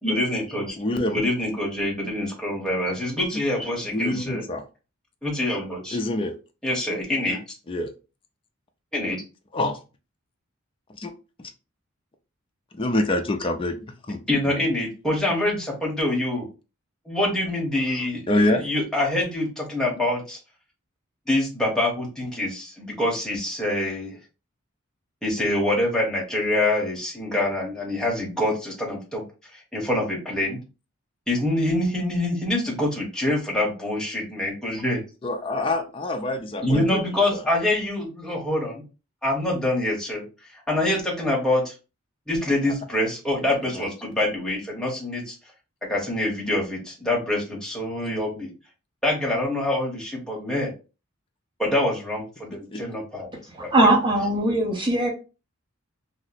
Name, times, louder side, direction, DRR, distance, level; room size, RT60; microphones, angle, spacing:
voice 1, 0.0-0.8 1.1-4.4 5.2-6.0 6.6-7.4 8.9-9.2 14.3-16.5 17.1-20.4 21.3-24.2 25.2-29.2 29.5-30.6 31.3-35.0 36.6-38.8 39.2-40.2 40.7-41.7 42.3-45.3 45.9-48.5 49.0-50.7 51.6-53.3 53.6-53.7, left 1 dB, 5° left, 1.1 m, -25 dB
voice 2, 0.8-1.2 3.9-4.6 5.9-6.4 7.7-7.9 9.5-9.8 11.0-11.1 11.4-11.5 12.7-14.2 18.3-18.6 35.2-37.0 37.3-37.4 43.7-43.9 52.7-52.8, left 1 dB, 25° left, 0.4 m, -26 dB
voice 3, 53.5-55.1, right 1 dB, 25° right, 0.9 m, -20 dB
2.8 x 2.0 x 4.0 m
head